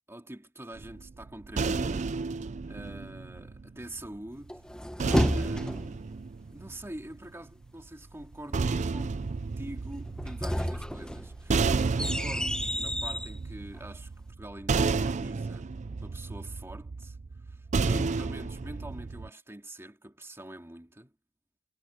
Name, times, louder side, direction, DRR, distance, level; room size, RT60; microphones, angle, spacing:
voice 1, 0.1-2.2 2.7-4.6 5.3-6.1 6.5-9.2 9.6-14.1 14.4-15.7 16.0-17.2 17.5-21.1, right 1 dB, 10° right, 2.4 m, -44 dB
sound 1, 0.8-4.1 5.0-7.3 8.2-19.3, right 4 dB, 35° right, 0.4 m, -32 dB
sound 2, 4.5-6.0 10.0-13.3, equal, 5° left, 1.0 m, -31 dB
head